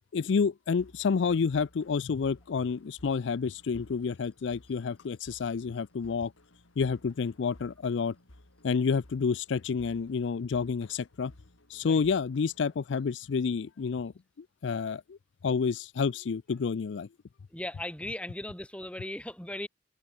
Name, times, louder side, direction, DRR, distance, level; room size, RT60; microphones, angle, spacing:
voice 1, 0.1-6.3 6.8-8.2 8.6-11.3 11.7-14.1 14.4-15.2 15.4-17.1, left 5 dB, 65° left, 0.4 m, -29 dB
sound 1, 0.8-12.8, left 1 dB, 90° left, 3.2 m, -57 dB
voice 2, 17.5-19.7, left 1 dB, 5° left, 1.6 m, -38 dB
open air
head